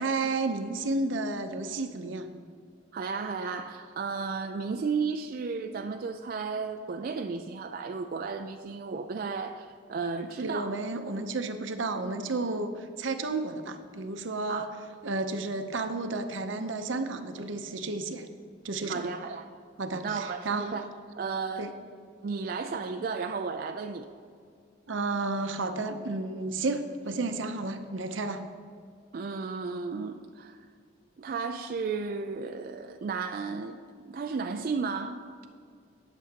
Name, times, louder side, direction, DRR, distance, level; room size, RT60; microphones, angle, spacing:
voice 1, 0.0-2.3 10.4-14.7 15.0-18.3 18.6-19.0 19.8-20.8 21.6-21.7 24.9-28.4, right 3 dB, 85° right, 8 dB, 0.7 m, -32 dB
voice 2, 2.9-10.7 14.5-14.7 18.8-19.5 20.0-20.9 21.2-21.7 22.2-24.1 29.1-30.6 31.2-33.8 34.1-35.2, right 5 dB, 50° right, 6 dB, 0.4 m, -33 dB
18.5 x 7.0 x 2.8 m, 2.1 s
head